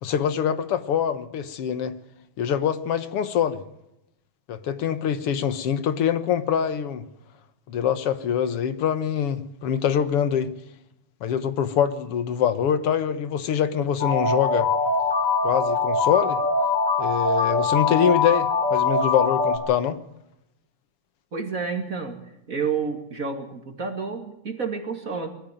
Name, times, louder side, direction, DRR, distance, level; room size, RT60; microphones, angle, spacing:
voice 1, 0.0-1.9 2.4-3.6 4.5-7.0 7.7-10.5 11.2-14.7 15.4-16.4 17.0-20.0, left 9 dB, 60° left, 12 dB, 1.9 m, -24 dB
sound 1, 14.0-19.6, left 3 dB, 25° left, 5.2 m, -22 dB
voice 2, 21.3-22.2 22.5-25.3, right 5 dB, 30° right, 5 dB, 2.4 m, -29 dB
21.5 x 14.5 x 9.2 m, 0.85 s
omnidirectional pair, 3.3 m